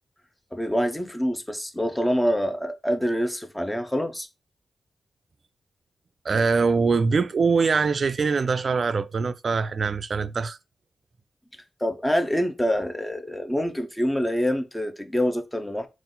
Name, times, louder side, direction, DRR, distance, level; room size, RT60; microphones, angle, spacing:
voice 1, 0.5-4.3 11.8-15.9, equal, 10° left, 0.7 m, -26 dB
voice 2, 6.2-10.6, right 4 dB, 55° right, 0.3 m, -23 dB
3.8 x 2.5 x 3.8 m
cardioid pair, 65°, 0 cm